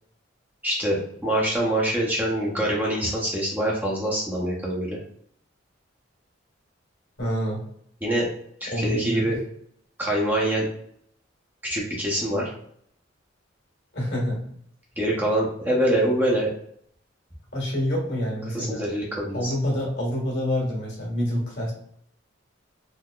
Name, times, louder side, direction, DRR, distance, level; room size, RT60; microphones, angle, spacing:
voice 1, 0.6-5.0 8.0-8.3 8.6-9.4 10.0-10.7 11.6-12.5 15.0-16.5 18.5-19.5, right 1 dB, 10° right, -4 dB, 0.7 m, -25 dB
voice 2, 7.2-7.6 8.7-9.4 13.9-14.4 17.5-18.8 19.3-21.7, equal, 60° left, -3 dB, 1.5 m, -27 dB
3.7 x 2.7 x 2.3 m, 0.67 s
head